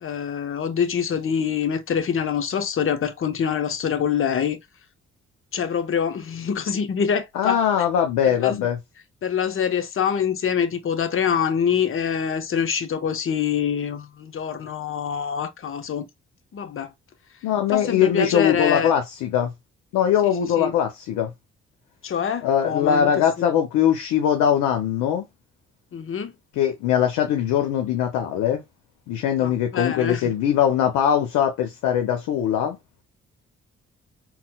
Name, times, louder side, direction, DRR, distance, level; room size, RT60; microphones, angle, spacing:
voice 1, 0.0-4.6 5.5-7.6 8.3-8.7 9.2-16.1 16.5-16.9 17.7-18.9 20.2-20.7 22.0-23.1 23.4-23.5 25.9-26.3 29.4-30.3, left 7 dB, 45° left, 0.7 m, -25 dB
voice 2, 7.3-8.8 17.4-19.5 19.9-21.3 22.4-25.3 26.6-28.6 29.1-32.8, left 9 dB, 85° left, 0.6 m, -21 dB
4.2 x 2.0 x 2.2 m
supercardioid pair, 50°, 29 cm